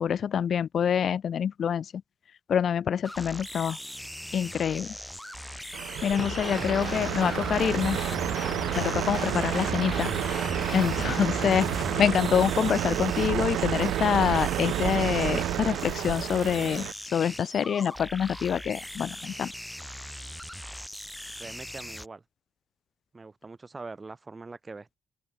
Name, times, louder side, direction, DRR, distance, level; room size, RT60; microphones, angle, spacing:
voice 1, 0.0-1.9 2.5-3.8 4.3-4.9 6.0-8.0 8.8-10.1 10.7-11.7 12.0-19.5, left 8 dB, 55° left, 0.3 m, -26 dB
sound 1, 3.0-22.1, equal, 5° left, 2.5 m, -41 dB
Truck, 5.7-16.9, right 13 dB, 80° right, 0.4 m, -30 dB
sound 2, 6.2-12.0, left 5 dB, 35° left, 2.5 m, -37 dB
voice 2, 21.4-22.2 23.1-25.0, right 3 dB, 25° right, 2.7 m, -43 dB
open air
cardioid pair, 90°, 0 cm